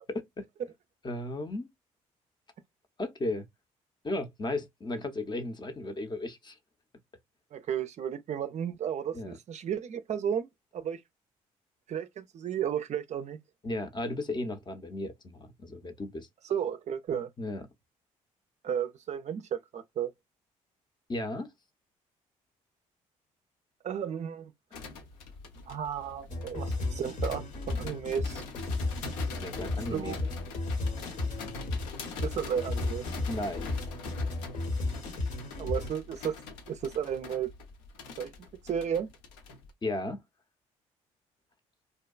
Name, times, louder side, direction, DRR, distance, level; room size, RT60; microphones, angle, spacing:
voice 1, 1.0-1.7 3.0-3.5 4.0-6.6 9.1-9.3 13.6-16.3 17.4-17.6 21.1-21.5 29.4-30.1 33.3-33.7 39.8-40.2, left 2 dB, 30° left, 0.6 m, -35 dB
voice 2, 7.5-11.0 11.9-13.4 16.4-17.3 18.6-20.1 23.8-24.5 25.7-28.4 29.9-30.3 32.2-33.1 35.6-36.4 36.7-37.5 38.2-38.3 38.6-39.1, right 8 dB, 50° right, 0.4 m, -33 dB
sound 1, 24.7-39.7, left 4 dB, 85° left, 0.6 m, -44 dB
sound 2, 26.3-35.9, left 2 dB, 50° left, 0.8 m, -34 dB
2.6 x 2.2 x 2.3 m
hypercardioid pair, 55°, 16 cm